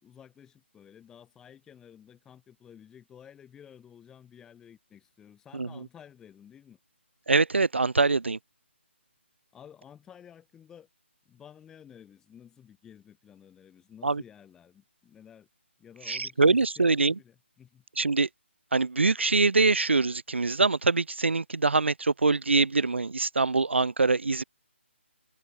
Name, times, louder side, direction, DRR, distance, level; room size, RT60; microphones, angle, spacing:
voice 1, 0.0-6.8 9.5-10.9 11.3-15.5 15.8-17.8, left 8 dB, 10° left, 5.2 m, -53 dB
voice 2, 7.3-8.4 14.0-14.2 16.1-17.1 18.0-18.3 18.7-24.4, right 3 dB, 65° right, 0.9 m, -24 dB
figure-of-eight pair, 145°, 7 cm